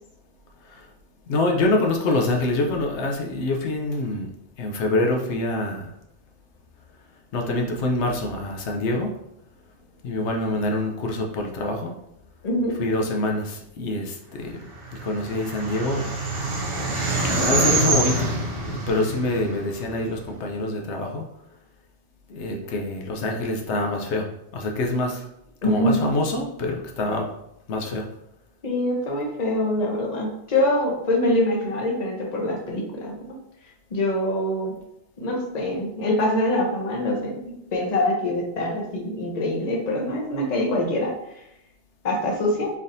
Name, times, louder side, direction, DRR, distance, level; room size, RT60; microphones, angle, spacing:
voice 1, 1.3-4.3 4.6-5.9 7.3-9.1 10.0-11.9 12.8-14.7 15.0-16.1 17.2-18.3 18.6-21.3 22.3-24.3 24.5-25.3 25.6-27.3 27.7-28.1, left 2 dB, 80° left, 1 dB, 0.9 m, -25 dB
voice 2, 12.4-12.7 25.6-26.0 28.6-33.1 33.9-34.7 35.2-41.1 42.0-42.7, left 1 dB, 40° left, -1 dB, 0.9 m, -24 dB
sound 1, 14.8-20.2, right 2 dB, 60° right, 0.9 m, -25 dB
4.1 x 3.5 x 2.6 m, 0.81 s
omnidirectional pair, 1.2 m